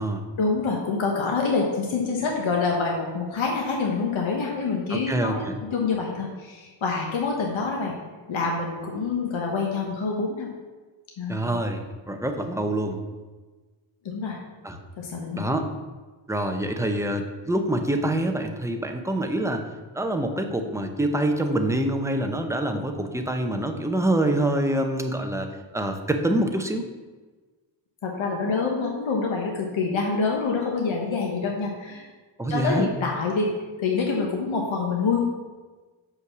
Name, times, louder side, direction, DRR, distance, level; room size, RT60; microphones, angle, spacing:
voice 1, 0.4-7.9 8.3-10.5 11.2-11.5 14.0-14.4 15.0-15.5 28.0-32.0 32.5-33.5 33.8-35.2, left 4 dB, 70° left, 0 dB, 1.3 m, -26 dB
voice 2, 4.9-5.5 11.3-13.0 14.6-14.8 15.4-15.7 16.3-19.6 19.9-26.9 32.4-32.9, right 1 dB, 5° right, 4 dB, 0.7 m, -26 dB
6.5 x 5.7 x 6.0 m, 1.3 s
wide cardioid pair, 135°, 49 cm